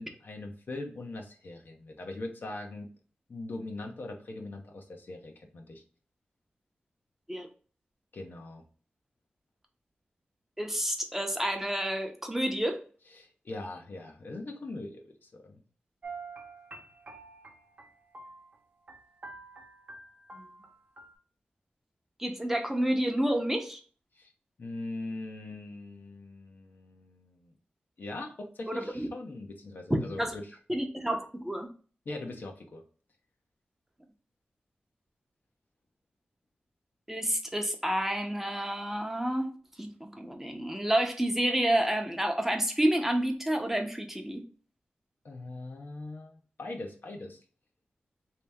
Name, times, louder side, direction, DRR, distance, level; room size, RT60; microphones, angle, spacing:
voice 1, 0.0-2.9 3.3-5.8 8.1-8.6 13.2-15.6 24.1-24.3 24.6-27.5 28.0-30.5 32.1-32.8 45.2-47.4, left 2 dB, 65° left, 2 dB, 0.8 m, -41 dB
voice 2, 10.6-12.8 20.3-20.4 22.2-23.8 28.7-29.1 29.9-30.4 30.7-31.7 37.1-39.5 39.8-44.4, right 1 dB, 10° right, 3 dB, 0.7 m, -29 dB
sound 1, 16.0-18.6 18.9-21.1, right 3 dB, 50° right, 0.8 m, -47 dB
3.3 x 2.9 x 3.4 m, 0.40 s
wide cardioid pair, 70°, 4 cm